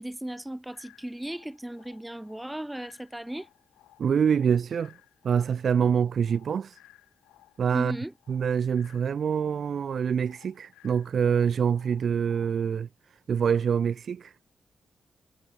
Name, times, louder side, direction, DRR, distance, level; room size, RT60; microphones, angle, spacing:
voice 1, 0.0-3.5 7.7-8.1, right 1 dB, 10° right, 1.1 m, -36 dB
sound 1, 0.7-12.7, left 15 dB, 85° left, 2.0 m, -59 dB
voice 2, 4.0-4.9 5.2-6.8 7.6-7.9 8.3-12.9 13.3-14.3, right 7 dB, 65° right, 0.3 m, -25 dB
hypercardioid pair, 45°, 0 cm